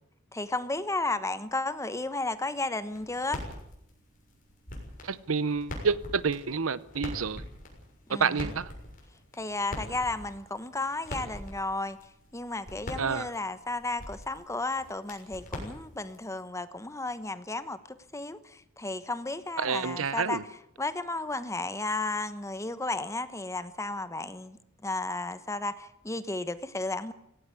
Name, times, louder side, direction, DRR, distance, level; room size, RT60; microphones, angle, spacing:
voice 1, 0.3-3.4 8.1-8.5 9.3-12.0 12.3-20.4 20.8-27.1, left 2 dB, 15° left, 1.1 m, -33 dB
sound 1, 2.9-16.3, left 1 dB, 45° left, 6.7 m, -43 dB
voice 2, 5.0-7.4 8.1-8.7 13.0-13.3 19.6-20.4, right 5 dB, 75° right, 0.8 m, -29 dB
17.5 x 17.5 x 9.8 m
head